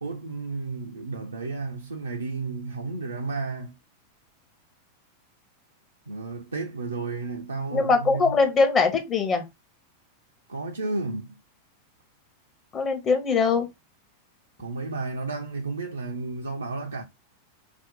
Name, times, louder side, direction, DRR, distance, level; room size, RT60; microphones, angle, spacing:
voice 1, 0.0-3.8 6.1-8.4 10.5-11.4 14.6-17.0, right 3 dB, 75° right, 0.4 m, -32 dB
voice 2, 7.7-9.4 12.7-13.7, left 4 dB, 25° left, 0.7 m, -22 dB
2.7 x 2.0 x 3.8 m
figure-of-eight pair, 90°, 0 cm